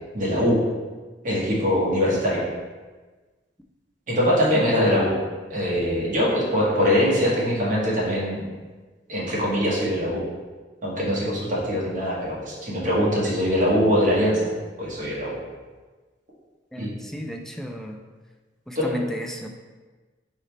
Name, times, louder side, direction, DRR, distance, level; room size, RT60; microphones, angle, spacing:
voice 1, 0.1-0.6 1.2-2.4 4.1-5.1 5.5-8.4 9.1-10.2 10.8-14.4 14.8-15.4 16.8-16.9 18.7-19.0, equal, 50° right, -5 dB, 1.3 m, -22 dB
voice 2, 16.7-18.0 18.7-19.5, equal, ahead, 2 dB, 0.3 m, -33 dB
4.1 x 3.9 x 3.3 m, 1.3 s
head